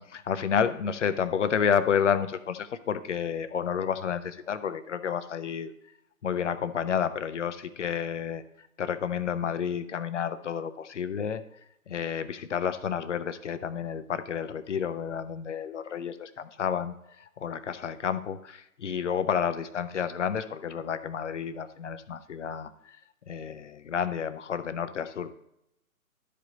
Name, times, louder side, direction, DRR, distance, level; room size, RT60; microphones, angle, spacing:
voice 1, 0.0-5.7 6.2-8.4 8.8-11.4 11.9-23.0 23.3-25.3, left 7 dB, 55° left, 12 dB, 0.7 m, -30 dB
12.0 x 5.1 x 4.0 m, 0.81 s
figure-of-eight pair, 145°, 44 cm